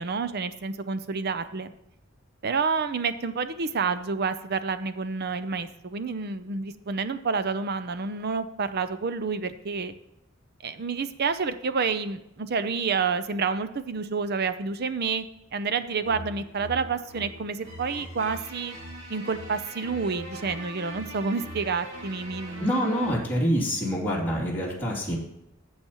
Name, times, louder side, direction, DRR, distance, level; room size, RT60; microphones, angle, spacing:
voice 1, 0.0-1.7 2.4-9.9 10.6-15.2 15.5-18.8 19.1-22.8, right 5 dB, 50° right, 12 dB, 0.6 m, -29 dB
sound 1, 16.0-23.2, right 2 dB, 75° right, 3.6 m, -41 dB
voice 2, 22.6-25.1, equal, 10° left, -6 dB, 2.8 m, -26 dB
14.5 x 7.1 x 3.1 m, 0.83 s
head